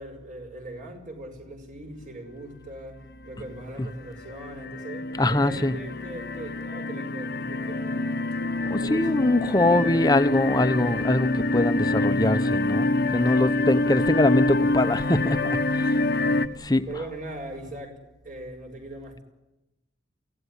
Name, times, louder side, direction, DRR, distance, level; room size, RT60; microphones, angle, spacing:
voice 1, 0.0-8.2 8.6-10.2 13.1-13.7 15.7-18.0 18.2-19.2, right 1 dB, 45° right, 5.4 m, -40 dB
sound 1, 3.3-3.7 4.2-16.5, left 2 dB, 60° left, 1.2 m, -26 dB
voice 2, 5.2-5.8 8.7-15.9 16.6-16.9, left 2 dB, 20° left, 1.0 m, -23 dB
24.5 x 17.0 x 10.0 m
head